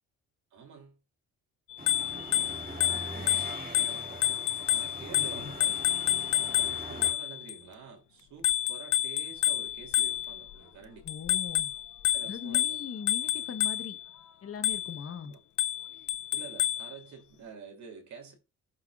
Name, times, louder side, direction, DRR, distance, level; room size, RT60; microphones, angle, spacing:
voice 1, 0.5-1.0 2.1-4.4 4.7-6.1 6.4-11.1 12.1-12.8 15.0-15.4 16.3-18.3, right 5 dB, 70° right, 2.8 m, -49 dB
Bicycle bell, 1.7-7.5 8.4-10.5 11.1-14.0 14.6-15.1 15.6-16.9, left 12 dB, 80° left, 0.6 m, -29 dB
sound 1, 1.8-7.1, right 1 dB, 30° right, 2.6 m, -42 dB
voice 2, 5.1-5.5 11.0-11.7 12.2-14.0 14.4-15.4, left 6 dB, 50° left, 1.1 m, -40 dB
12.5 x 5.8 x 2.4 m
cardioid pair, 90°, 30 cm